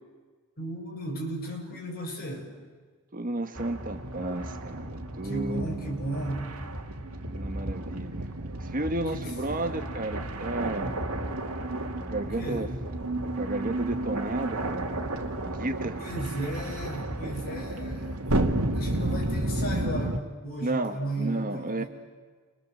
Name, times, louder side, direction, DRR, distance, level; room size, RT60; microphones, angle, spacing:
voice 1, 0.6-2.6 5.2-6.6 9.1-9.3 12.4-12.7 16.0-18.2 18.7-21.9, right 1 dB, 45° left, 0 dB, 7.0 m, -35 dB
voice 2, 3.1-5.7 7.2-11.0 12.0-12.7 13.4-15.0 15.4-16.0 20.6-21.8, right 2 dB, 40° right, 7 dB, 1.6 m, -33 dB
sound 1, 3.6-20.2, right 1 dB, 75° right, 2.6 m, -32 dB
29.5 x 24.5 x 7.9 m, 1.5 s
head